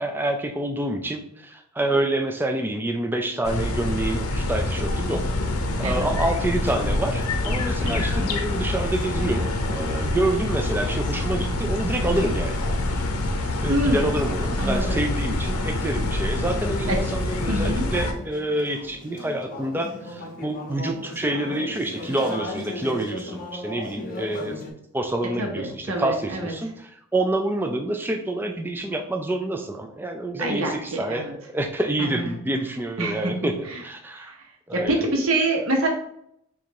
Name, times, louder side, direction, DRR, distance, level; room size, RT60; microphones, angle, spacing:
voice 1, 0.0-5.2 5.8-12.6 13.6-24.5 24.9-34.3 34.7-35.1, right 1 dB, 10° right, 4 dB, 0.3 m, -27 dB
sound 1, 3.4-18.1, left 2 dB, 80° left, 0.6 m, -26 dB
Conversation / Chatter, 5.1-24.7, left 2 dB, 35° left, 0.7 m, -39 dB
voice 2, 7.8-8.3 12.0-12.3 13.7-14.2 14.6-15.0 16.9-17.0 17.5-17.8 25.4-26.5 30.4-31.3 32.0-32.4 33.0-33.3 33.7-33.8 34.1-34.4 34.7-35.9, right 1 dB, 70° right, 0 dB, 0.9 m, -26 dB
4.0 x 2.5 x 4.6 m, 0.73 s
head